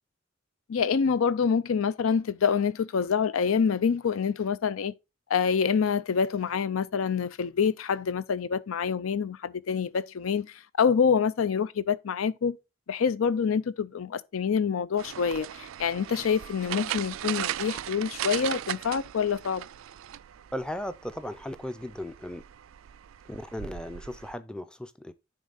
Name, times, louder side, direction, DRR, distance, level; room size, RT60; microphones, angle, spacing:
voice 1, 0.7-4.9 5.3-12.6 12.9-19.7, left 6 dB, 85° left, 0.5 m, -26 dB
sound 1, 15.0-24.3, right 11 dB, 75° right, 0.3 m, -38 dB
voice 2, 20.5-22.4 23.3-25.1, left 1 dB, 5° left, 0.5 m, -36 dB
9.8 x 3.7 x 3.9 m
head